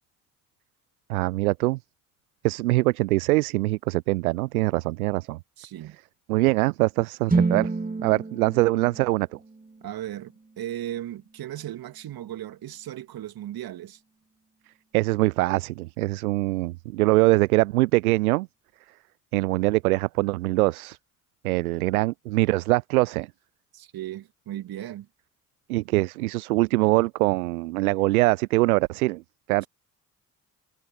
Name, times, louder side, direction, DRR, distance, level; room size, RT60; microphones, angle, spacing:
voice 1, 1.1-1.8 2.4-5.4 6.3-7.7 8.0-9.4 14.9-18.5 19.3-21.0 21.4-23.3 25.7-29.2 29.5-29.6, right 21 dB, 75° right, 0.5 m, -23 dB
voice 2, 5.6-6.0 9.8-14.0 23.7-25.1, right 12 dB, 55° right, 2.9 m, -36 dB
sound 1, 7.3-11.3, right 3 dB, 20° right, 3.2 m, -30 dB
figure-of-eight pair, 45°, 44 cm